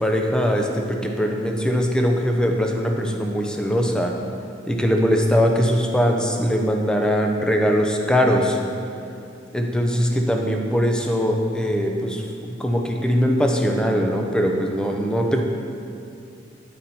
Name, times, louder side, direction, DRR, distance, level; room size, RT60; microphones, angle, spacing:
voice 1, 0.0-4.2 4.7-8.6 9.5-15.4, equal, 5° left, 2 dB, 0.4 m, -21 dB
8.8 x 4.1 x 4.3 m, 2.5 s
head